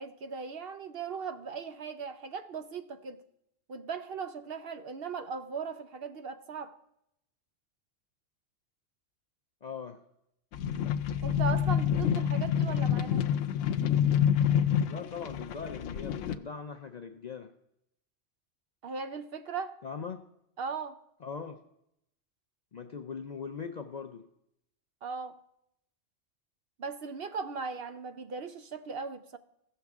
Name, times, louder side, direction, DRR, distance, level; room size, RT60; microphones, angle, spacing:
voice 1, 0.0-3.2 3.7-6.8 11.2-13.3 18.8-19.8 20.6-21.0 25.0-25.4 26.8-29.4, right 5 dB, 60° right, 0.8 m, -38 dB
voice 2, 9.6-10.0 14.9-17.5 19.8-20.2 21.2-21.6 22.7-24.2, left 6 dB, 50° left, 0.5 m, -40 dB
sound 1, 10.5-16.3, left 9 dB, 85° left, 0.9 m, -27 dB
16.0 x 6.7 x 3.5 m
omnidirectional pair, 1.2 m